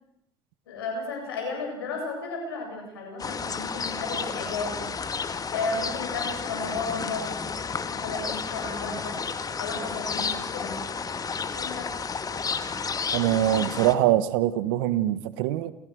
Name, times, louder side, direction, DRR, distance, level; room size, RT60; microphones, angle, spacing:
voice 1, 0.7-4.8 5.5-7.5 7.9-9.1 9.6-10.7 11.5-11.9, left 3 dB, 90° left, 2 dB, 7.9 m, -33 dB
sound 1, 3.2-14.0, left 5 dB, 30° left, 1.9 m, -32 dB
voice 2, 13.1-15.7, right 13 dB, 80° right, 15 dB, 1.5 m, -23 dB
28.5 x 17.0 x 6.4 m, 0.77 s
hypercardioid pair, 75°, 12 cm